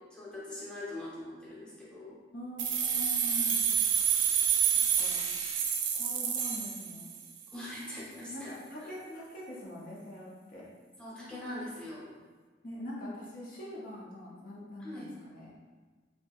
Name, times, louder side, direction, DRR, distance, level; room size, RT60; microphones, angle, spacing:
voice 1, 0.0-2.2 7.5-8.5 8.8-8.9 11.0-12.1 14.8-15.1, left 1 dB, 5° left, -8 dB, 0.9 m, -42 dB
voice 2, 2.3-3.6 4.7-5.3 5.9-7.1 8.3-10.7 12.6-15.5, left 1 dB, 50° left, -5 dB, 0.6 m, -44 dB
sound 1, 2.6-7.4, right 8 dB, 75° right, 0.4 m, -28 dB
4.4 x 2.7 x 2.4 m, 1.4 s
head